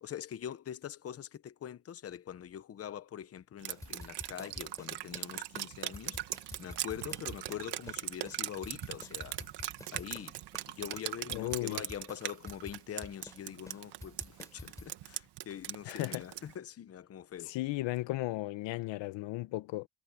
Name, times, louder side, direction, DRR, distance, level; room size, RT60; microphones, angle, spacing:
voice 1, 0.0-6.2 6.6-9.4 9.9-10.4 10.8-17.6, left 9 dB, 35° left, 0.9 m, -43 dB
Drip, 3.6-16.5, right 14 dB, 65° right, 1.6 m, -40 dB
sound 1, 3.7-5.3 5.6-5.7 5.9-8.0 8.3-10.3 10.5-10.7 10.9-13.4 13.7-14.9, left 1 dB, 5° left, 5.6 m, -49 dB
voice 2, 11.3-11.8 15.8-16.3 17.5-19.9, left 18 dB, 85° left, 1.0 m, -35 dB
cardioid pair, 155°, 43 cm